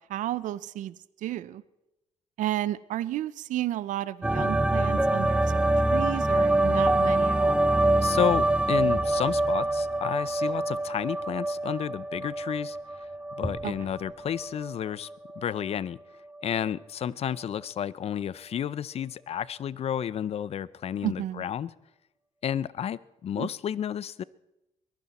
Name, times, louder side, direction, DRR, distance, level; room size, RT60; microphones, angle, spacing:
voice 1, 0.1-1.6 2.4-7.7 13.6-13.7 21.0-21.4 23.4-23.5, right 13 dB, 80° right, 19 dB, 0.6 m, -32 dB
sound 1, 4.2-14.8 15.1-15.8, right 2 dB, 10° right, 0.5 m, -25 dB
voice 2, 8.0-12.8 13.4-15.1 15.4-16.0 16.4-21.7 22.4-24.2, left 9 dB, 50° left, 20 dB, 0.5 m, -31 dB
22.0 x 15.0 x 4.2 m, 0.95 s
cardioid pair, 100°, 13 cm